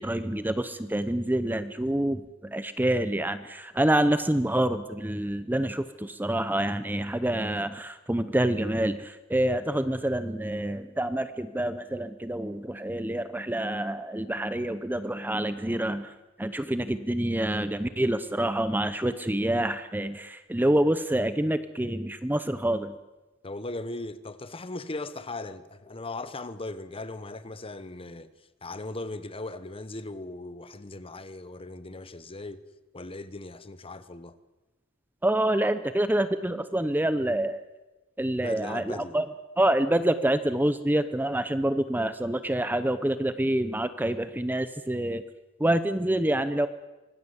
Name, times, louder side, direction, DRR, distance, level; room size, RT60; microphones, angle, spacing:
voice 1, 0.0-23.0 35.2-37.6 38.2-39.3 39.6-45.2 45.6-46.7, right 1 dB, 10° right, 0.8 m, -27 dB
voice 2, 23.4-32.6 32.9-34.4 38.3-39.1, left 2 dB, 25° left, 1.1 m, -38 dB
25.0 x 19.5 x 8.1 m
head